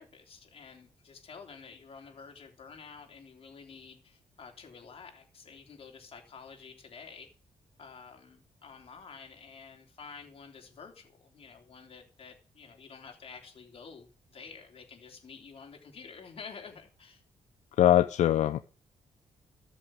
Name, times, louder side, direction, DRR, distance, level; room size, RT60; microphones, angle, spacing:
voice 1, 0.0-7.3 7.8-17.2, left 5 dB, 50° left, 2 dB, 3.4 m, -50 dB
voice 2, 17.8-18.6, left 11 dB, 80° left, 10 dB, 0.6 m, -22 dB
13.5 x 6.2 x 6.3 m, 0.39 s
cardioid pair, 100°, 12 cm